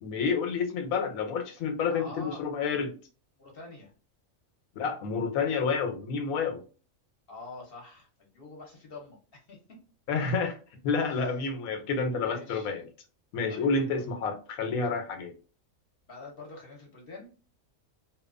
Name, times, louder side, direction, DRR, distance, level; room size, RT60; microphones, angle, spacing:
voice 1, 0.0-2.9 4.8-6.6 10.1-10.6 10.8-12.9 13.3-15.3, left 5 dB, 90° left, 5 dB, 1.1 m, -29 dB
voice 2, 1.9-2.4 3.4-3.9 7.3-9.8 11.1-11.3 12.2-12.7 13.5-14.0 16.1-17.3, left 3 dB, 50° left, 0 dB, 0.9 m, -46 dB
2.8 x 2.2 x 2.4 m, 0.36 s
omnidirectional pair, 1.4 m